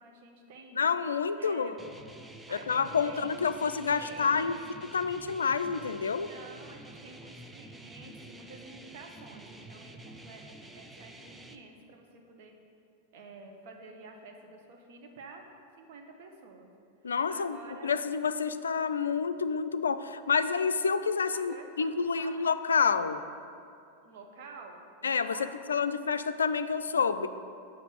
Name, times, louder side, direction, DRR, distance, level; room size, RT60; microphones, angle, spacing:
voice 1, 0.0-0.8 1.4-1.9 2.5-4.7 6.1-10.4 10.7-12.5 13.1-16.7 17.3-17.9 21.3-21.9 22.1-22.4 24.0-25.5 25.8-26.0, right 3 dB, 50° right, 2 dB, 1.3 m, -50 dB
voice 2, 0.7-1.8 2.5-6.3 17.0-17.6 17.8-23.2 25.0-25.4 25.7-27.3, left 5 dB, 70° left, 12 dB, 0.4 m, -28 dB
sound 1, 1.8-11.6, right 2 dB, 10° right, 0.6 m, -49 dB
8.3 x 6.0 x 7.8 m, 2.5 s
figure-of-eight pair, 90°, 0 cm